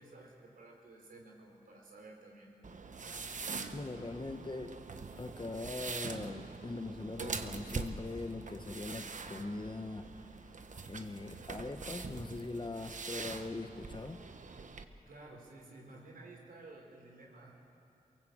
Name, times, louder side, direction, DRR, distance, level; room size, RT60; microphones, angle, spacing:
voice 1, 0.0-2.5 15.1-17.5, right 2 dB, 80° right, 0 dB, 4.0 m, -53 dB
sound 1, 2.6-14.8, right 4 dB, 60° right, 1.2 m, -44 dB
voice 2, 3.7-4.8 5.2-10.2 10.9-14.2, left 2 dB, 35° left, 8 dB, 1.2 m, -41 dB
23.0 x 18.5 x 8.0 m, 2.8 s
cardioid pair, 55°, 14 cm